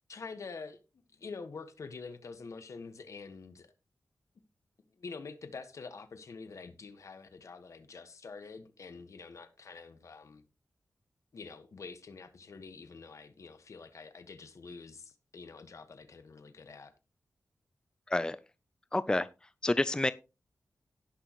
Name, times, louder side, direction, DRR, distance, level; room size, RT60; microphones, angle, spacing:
voice 1, 0.1-0.8 1.1-3.7 4.9-10.4 11.3-16.9, left 4 dB, 70° left, 1.5 m, -46 dB
voice 2, 18.9-19.3 19.6-20.1, left 2 dB, 15° left, 0.5 m, -28 dB
17.5 x 6.3 x 3.1 m
wide cardioid pair, 85°, 5 cm